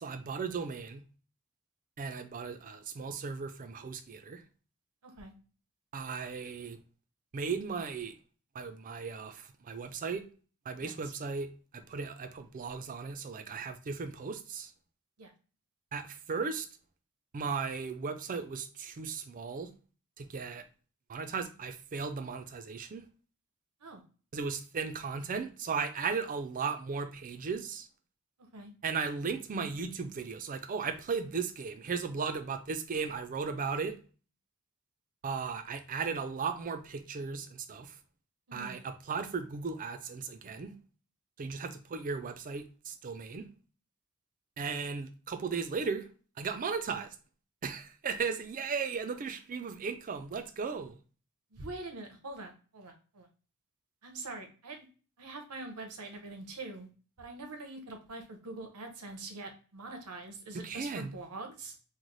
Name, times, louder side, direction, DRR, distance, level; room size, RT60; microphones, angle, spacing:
voice 1, 0.0-1.0 2.0-4.4 5.9-6.8 7.3-8.1 8.5-10.2 10.7-11.5 11.7-14.7 15.9-16.7 17.3-19.7 20.2-20.7 21.1-23.0 24.3-27.9 28.8-34.0 35.2-38.0 38.5-40.7 41.4-43.5 44.6-46.1 46.4-47.1 47.6-51.0 60.6-61.1, right 5 dB, 40° right, 0.4 m, -36 dB
voice 2, 5.0-5.3 10.8-11.1 15.2-15.3 23.8-24.0 28.5-28.7 38.5-38.8 51.5-53.3 54.0-54.9 55.2-56.9 57.2-61.8, right 2 dB, 90° right, 0.8 m, -44 dB
3.1 x 2.1 x 3.9 m
head